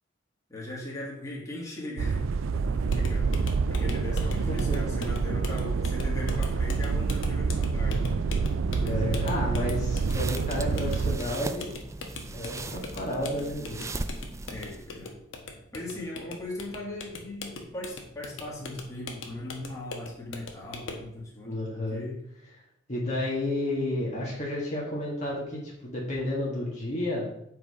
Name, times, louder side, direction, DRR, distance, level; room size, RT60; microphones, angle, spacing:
voice 1, 0.5-2.3 2.5-8.1 8.8-9.7 14.5-15.2 15.7-22.2, left 1 dB, 15° left, -4 dB, 2.1 m, -39 dB
sound 1, 2.0-11.2, right 4 dB, 85° right, 0.4 m, -27 dB
sound 2, 2.9-21.1, left 3 dB, 70° left, 1.2 m, -42 dB
voice 2, 8.8-11.8 12.3-13.9 21.5-22.0 22.9-27.4, left 1 dB, 35° left, -5 dB, 1.7 m, -31 dB
sound 3, 9.8-15.1, right 2 dB, 15° right, 0.4 m, -39 dB
7.7 x 4.8 x 4.8 m, 0.74 s
head